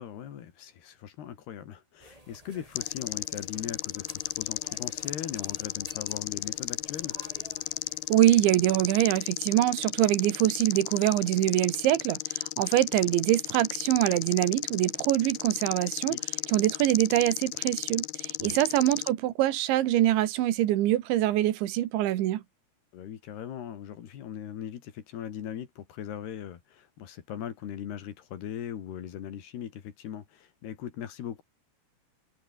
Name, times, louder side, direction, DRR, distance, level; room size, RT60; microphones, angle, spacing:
voice 1, 0.0-7.2 16.1-16.2 18.4-18.6 22.9-31.4, left 9 dB, 65° left, 4.2 m, -39 dB
sound 1, 2.0-8.6, right 1 dB, 5° right, 6.0 m, -53 dB
sound 2, 2.8-19.1, left 18 dB, 80° left, 2.3 m, -34 dB
voice 2, 8.1-16.2 16.5-22.4, right 14 dB, 85° right, 3.9 m, -24 dB
omnidirectional pair, 5.1 m